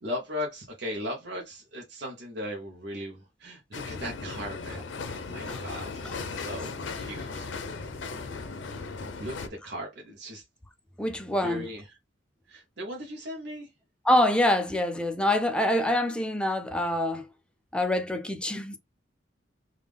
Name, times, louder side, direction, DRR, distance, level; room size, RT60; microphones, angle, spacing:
voice 1, 0.0-7.5 9.2-10.4 11.4-11.8 12.5-13.7, left 1 dB, 65° right, 0.8 m, -38 dB
sound 1, 3.7-9.5, left 4 dB, 85° left, 0.6 m, -37 dB
voice 2, 11.0-11.7 14.0-17.3 17.7-18.8, left 1 dB, 5° left, 0.4 m, -25 dB
3.5 x 2.3 x 3.3 m
head